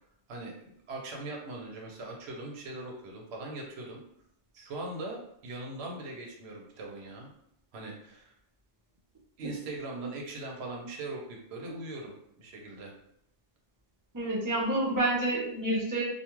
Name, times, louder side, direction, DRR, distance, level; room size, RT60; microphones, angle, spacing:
voice 1, 0.3-4.0 4.5-7.3 7.7-8.3 9.4-12.9, right 2 dB, 60° right, 0 dB, 0.9 m, -40 dB
voice 2, 14.1-16.0, right 1 dB, 25° right, -3 dB, 0.5 m, -28 dB
2.4 x 2.3 x 3.0 m, 0.74 s
omnidirectional pair, 1.3 m